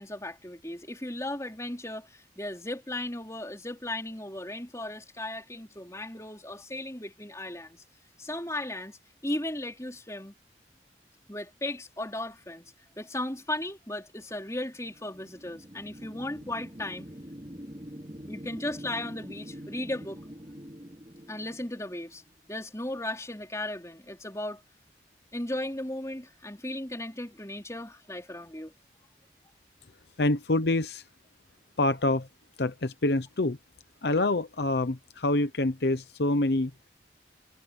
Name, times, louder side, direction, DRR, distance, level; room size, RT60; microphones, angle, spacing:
voice 1, 0.0-7.8 8.2-9.0 9.2-10.3 11.3-17.1 18.3-20.2 21.3-22.2 22.5-24.6 25.3-28.7, left 1 dB, 15° left, 4.4 m, -36 dB
sound 1, 14.7-22.3, equal, 25° right, 4.0 m, -45 dB
voice 2, 30.2-31.0 31.8-32.3 32.6-33.6 34.0-36.7, left 2 dB, 65° left, 0.9 m, -26 dB
head